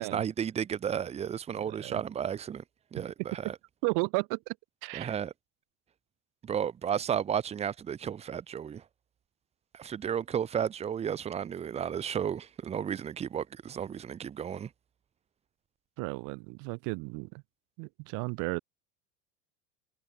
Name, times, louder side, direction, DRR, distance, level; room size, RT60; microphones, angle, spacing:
voice 1, 0.0-2.6 2.9-3.5 4.9-5.3 6.4-8.8 9.7-14.7, right 8 dB, 15° right, 1.0 m, -33 dB
voice 2, 1.6-2.0 3.4-3.5 3.8-4.6 4.8-5.2 16.0-17.4 17.8-18.6, right 33 dB, 45° right, 1.5 m, -34 dB
supercardioid pair, 170°, 43 cm